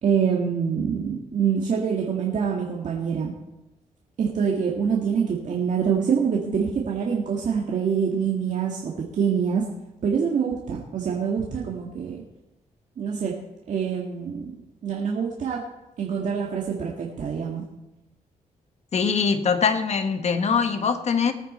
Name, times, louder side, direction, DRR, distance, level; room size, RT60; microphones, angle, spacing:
voice 1, 0.0-3.3 4.2-9.7 10.0-12.2 13.0-13.4 13.7-17.6, right 6 dB, 65° right, -2 dB, 1.9 m, -25 dB
voice 2, 18.9-21.3, left 6 dB, 55° left, 8 dB, 1.3 m, -22 dB
19.5 x 9.2 x 4.3 m, 0.95 s
cardioid pair, 90°, 14 cm